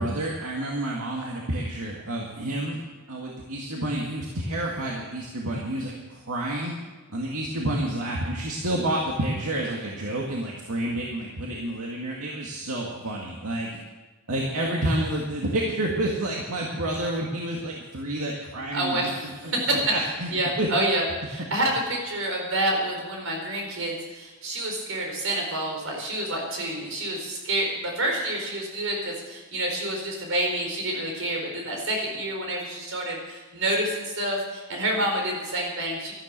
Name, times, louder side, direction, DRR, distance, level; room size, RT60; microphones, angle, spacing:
voice 1, 0.0-2.8 3.1-6.7 7.1-13.7 14.3-20.3 20.6-20.7 21.6-21.7, right 1 dB, 85° right, -2 dB, 2.1 m, -29 dB
voice 2, 18.7-19.8 20.3-36.1, right 1 dB, 65° right, 1 dB, 4.7 m, -28 dB
13.0 x 12.0 x 7.6 m, 1.2 s
head